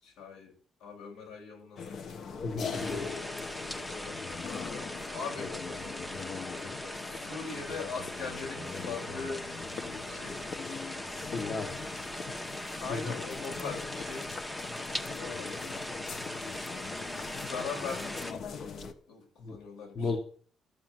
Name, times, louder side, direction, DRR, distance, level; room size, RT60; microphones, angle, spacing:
voice 1, 0.0-2.2 5.1-5.6 6.9-9.5 10.0-10.5 12.8-14.4 15.1-15.7 17.5-20.2, left 5 dB, 85° left, 0 dB, 7.5 m, -41 dB
sound 1, 1.8-18.9, left 5 dB, 60° left, 1.4 m, -41 dB
voice 2, 2.4-3.1 11.1-11.8 12.9-13.1 19.4-19.6 20.0-20.2, left 3 dB, 40° left, 4 dB, 1.9 m, -34 dB
sound 2, 2.7-18.3, left 1 dB, 10° left, 1.2 m, -40 dB
12.5 x 7.2 x 7.7 m, 0.44 s
cardioid pair, 90°, 0 cm